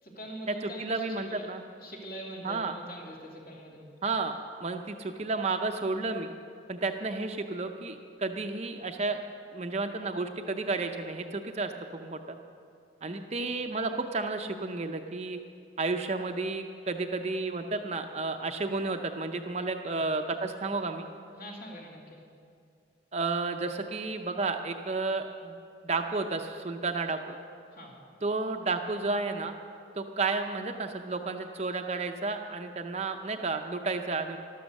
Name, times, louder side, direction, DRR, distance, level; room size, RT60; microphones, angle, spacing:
voice 1, 0.0-1.0 1.3-1.5 1.8-3.9 13.0-13.1 19.8-20.0 21.3-22.2 27.7-27.9, right 1 dB, 45° left, -2 dB, 2.7 m, -43 dB
voice 2, 0.6-1.6 2.4-2.7 4.0-6.3 6.7-9.2 9.5-12.4 13.0-15.4 15.8-21.1 23.1-25.6 25.8-27.4 28.2-29.5 30.0-34.4, right 3 dB, 35° right, 5 dB, 0.6 m, -32 dB
13.5 x 12.5 x 6.5 m, 2.3 s
head